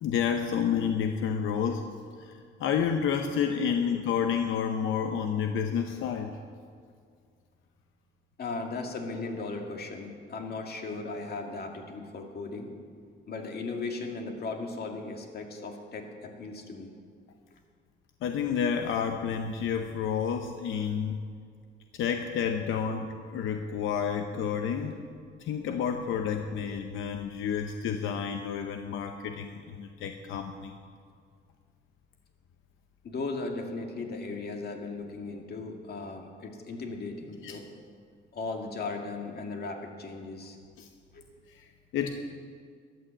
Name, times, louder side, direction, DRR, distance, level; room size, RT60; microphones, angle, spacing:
voice 1, 0.0-1.9 2.2-6.4 18.2-21.3 21.9-25.1 25.4-30.8 37.4-37.6 40.8-40.9 41.5-41.7 41.9-42.2, left 7 dB, 85° left, 6 dB, 0.8 m, -30 dB
voice 2, 8.4-12.7 13.3-16.9 33.0-37.6 38.3-40.6 41.1-41.3, left 3 dB, 50° left, 2 dB, 2.1 m, -37 dB
13.0 x 9.5 x 7.5 m, 2.1 s
cardioid pair, 90°, 20 cm